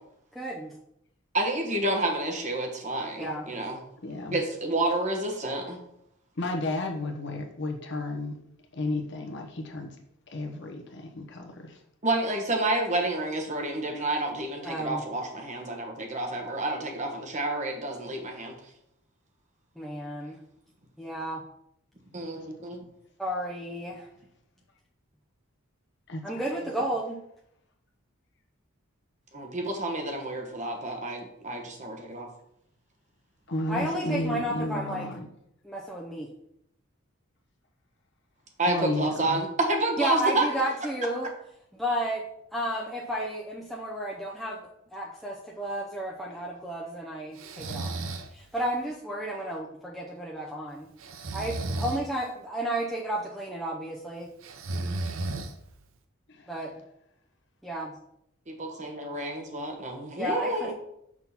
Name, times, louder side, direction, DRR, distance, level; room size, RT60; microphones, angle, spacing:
voice 1, 0.3-0.7 3.2-3.4 14.6-15.0 19.8-20.4 21.0-21.4 23.2-24.1 26.2-27.2 33.7-35.1 35.6-36.3 40.0-41.3 41.7-42.2 42.5-47.9 48.3-50.9 51.3-54.3 56.5-56.7 57.6-57.9 60.1-60.7, right 1 dB, ahead, -5 dB, 0.7 m, -32 dB
voice 2, 1.3-3.8 4.3-5.8 12.0-18.5 22.1-22.8 29.3-32.3 38.6-40.5 58.5-60.7, right 2 dB, 35° right, 2 dB, 1.1 m, -29 dB
voice 3, 4.0-4.4 6.4-8.3 8.7-10.0 10.3-11.8 26.1-26.4 33.5-35.3 38.7-39.4 56.3-56.5, left 2 dB, 55° left, 3 dB, 1.0 m, -33 dB
Breathing, 47.4-48.3 51.0-52.0 54.4-55.8, right 2 dB, 70° right, 0.6 m, -33 dB
6.1 x 3.7 x 5.9 m, 0.76 s
head